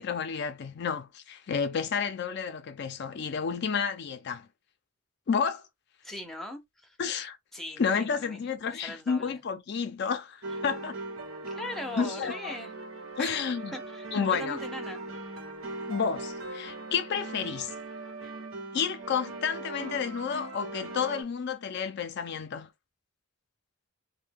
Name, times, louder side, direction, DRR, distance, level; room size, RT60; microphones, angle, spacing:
voice 1, 0.0-4.5 5.3-5.6 7.0-7.4 7.8-11.0 12.0-12.5 13.2-13.7 14.1-14.6 15.9-17.7 18.7-22.7, left 6 dB, 55° left, 0.4 m, -31 dB
voice 2, 6.0-7.0 7.5-9.4 11.5-12.7 13.2-13.4 13.7-15.0, left 1 dB, ahead, 0.6 m, -40 dB
sound 1, 10.4-21.2, right 2 dB, 75° right, 0.8 m, -39 dB
2.6 x 2.1 x 3.4 m
head